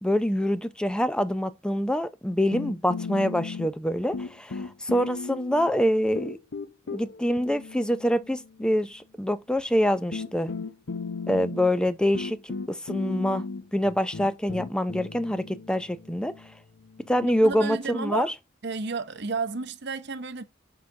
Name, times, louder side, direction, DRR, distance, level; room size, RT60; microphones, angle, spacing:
voice 1, 0.0-6.4 6.9-10.5 11.3-13.4 13.7-16.3 17.1-18.3, equal, 5° left, 0.5 m, -25 dB
sound 1, 2.5-3.9 4.1-5.7 6.1-8.6 9.6-9.7 10.1-17.6, left 4 dB, 70° left, 0.6 m, -36 dB
voice 2, 17.2-18.3 18.6-20.4, right 4 dB, 60° right, 0.8 m, -32 dB
7.7 x 3.9 x 5.7 m
head